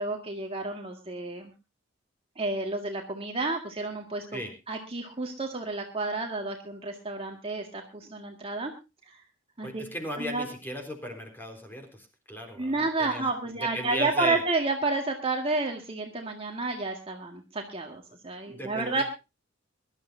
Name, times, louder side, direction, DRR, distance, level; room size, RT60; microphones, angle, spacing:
voice 1, 0.0-1.5 2.4-4.4 4.7-8.7 9.6-9.8 10.2-10.5 12.6-19.0, right 3 dB, 30° right, 2 dB, 1.9 m, -30 dB
voice 2, 9.6-13.2 13.6-14.4 18.5-19.0, equal, 10° left, 4 dB, 4.1 m, -36 dB
23.0 x 12.5 x 2.7 m, 0.27 s
head